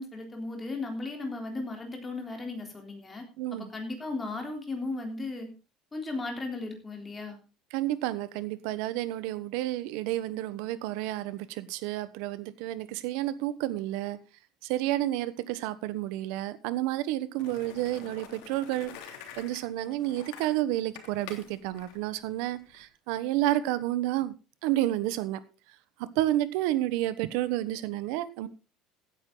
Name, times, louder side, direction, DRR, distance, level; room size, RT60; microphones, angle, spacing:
voice 1, 0.0-3.3 3.6-5.5 5.9-7.4, left 2 dB, 15° left, 3.5 m, -36 dB
voice 2, 3.4-3.7 7.7-14.2 14.6-18.9 19.4-24.3 24.6-25.4 26.0-28.5, right 14 dB, 80° right, 1.2 m, -30 dB
Skateboard, 17.4-22.8, left 8 dB, 90° left, 3.1 m, -47 dB
16.0 x 9.9 x 3.9 m
cardioid pair, 160°, 0 cm